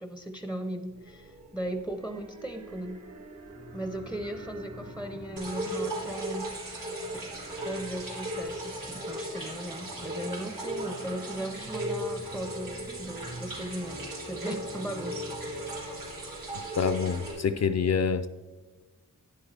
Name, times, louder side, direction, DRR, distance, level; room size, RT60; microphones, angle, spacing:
voice 1, 0.0-3.0 3.7-6.5 7.1-7.3 7.6-15.6, right 1 dB, 5° right, 6 dB, 0.6 m, -37 dB
sound 1, 0.9-17.7, right 1 dB, 60° right, 1.9 m, -45 dB
sound 2, 5.4-17.3, right 1 dB, 90° right, 3.5 m, -37 dB
voice 2, 16.8-18.3, left 6 dB, 55° left, 11 dB, 0.4 m, -26 dB
11.5 x 10.0 x 3.3 m, 1.2 s
wide cardioid pair, 110°, 32 cm